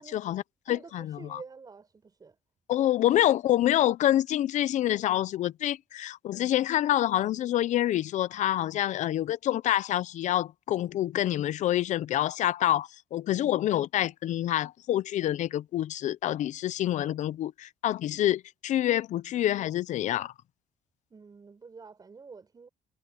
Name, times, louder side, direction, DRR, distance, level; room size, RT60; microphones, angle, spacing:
voice 1, 0.0-1.4 2.7-20.3, left 13 dB, 65° left, 0.7 m, -27 dB
voice 2, 0.7-2.4 2.8-2.9 21.1-22.7, right 5 dB, 30° right, 6.4 m, -48 dB
cardioid pair, 110°, 14 cm